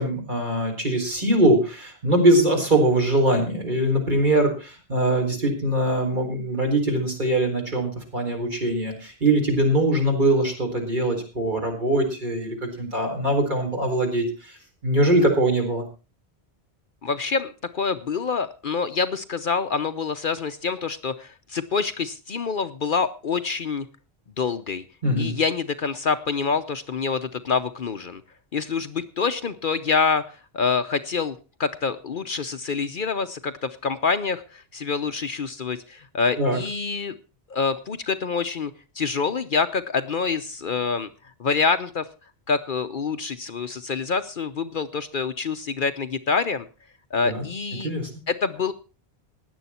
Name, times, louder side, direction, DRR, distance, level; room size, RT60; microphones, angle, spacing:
voice 1, 0.0-14.6 14.8-15.8 25.0-25.3 36.4-36.6 47.2-47.4 47.8-48.1, right 1 dB, 45° right, 1 dB, 4.4 m, -22 dB
voice 2, 17.0-23.9 24.4-24.8 25.2-28.2 28.5-37.1 37.5-41.1 41.4-42.1 42.5-46.7 47.1-47.9 48.3-48.7, left 5 dB, 55° left, 10 dB, 0.9 m, -26 dB
16.5 x 10.5 x 4.3 m, 0.33 s
omnidirectional pair, 1.1 m